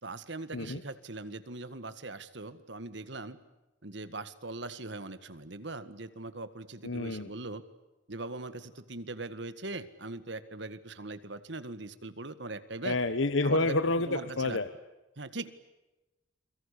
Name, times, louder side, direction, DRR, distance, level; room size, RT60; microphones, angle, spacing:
voice 1, 0.0-3.4 3.8-7.6 8.1-13.0 13.4-13.8 14.1-14.6 15.2-15.5, right 2 dB, 65° right, 13 dB, 1.9 m, -40 dB
voice 2, 6.8-7.3 12.8-14.7, left 2 dB, 80° left, 11 dB, 1.2 m, -29 dB
29.5 x 23.5 x 8.5 m, 1.0 s
head